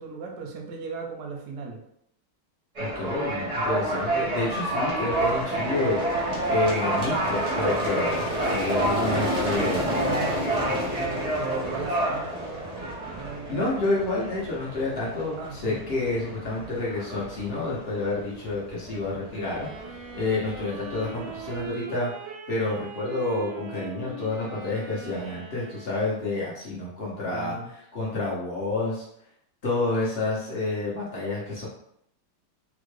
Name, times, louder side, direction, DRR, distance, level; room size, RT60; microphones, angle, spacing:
voice 1, 0.0-1.8 9.3-13.7 15.4-15.8 27.3-27.7, right 5 dB, 70° right, 1 dB, 0.9 m, -37 dB
sound 1, 2.7-21.7, right 1 dB, 55° right, 0.4 m, -29 dB
voice 2, 2.8-9.9 13.5-22.1 22.5-29.1 29.6-31.7, left 2 dB, 90° left, -6 dB, 0.5 m, -29 dB
Wind instrument woodwind instrument, 19.4-26.5, right 4 dB, 90° right, 1.4 m, -40 dB
3.6 x 2.1 x 3.2 m, 0.73 s
omnidirectional pair, 2.2 m